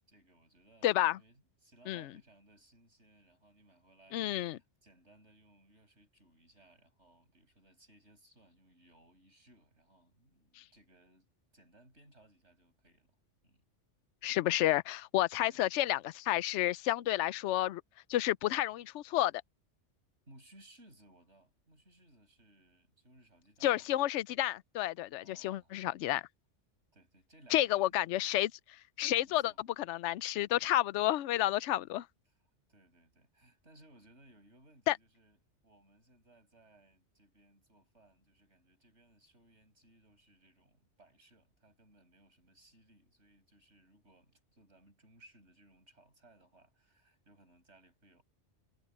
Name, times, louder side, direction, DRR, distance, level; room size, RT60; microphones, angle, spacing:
voice 1, 0.1-11.3 11.5-13.2 13.4-13.7 15.4-15.6 20.3-23.9 25.2-25.8 26.9-28.0 29.2-29.6 32.7-48.2, right 1 dB, 70° right, 7.6 m, -63 dB
voice 2, 0.8-1.2 1.9-2.0 4.1-4.6 14.2-17.8 18.1-19.3 23.6-26.2 27.5-28.5 29.0-29.5 29.9-32.1 34.9-35.0, left 14 dB, 75° left, 0.9 m, -30 dB
omnidirectional pair, 1.2 m